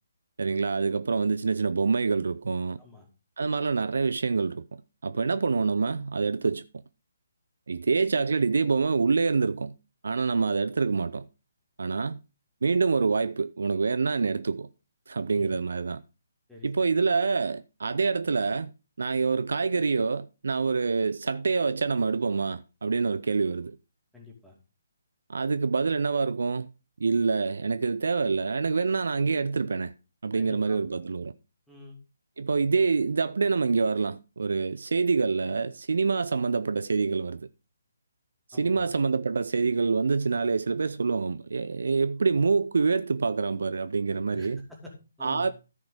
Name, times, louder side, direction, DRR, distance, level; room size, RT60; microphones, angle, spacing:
voice 1, 0.4-2.8 3.4-4.6 5.0-6.6 7.7-9.7 10.0-11.3 11.8-12.2 12.6-14.7 15.1-16.0 16.6-18.7 19.0-23.8 25.3-26.7 27.0-29.9 30.2-31.3 32.4-37.4 38.5-44.6 45.2-45.5, right 4 dB, 60° right, 0.5 m, -26 dB
voice 2, 24.1-24.6 30.3-31.0 31.7-32.0 38.5-38.9 44.3-45.5, left 3 dB, ahead, 2.6 m, -47 dB
13.5 x 5.0 x 5.0 m
figure-of-eight pair, 140°, 0 cm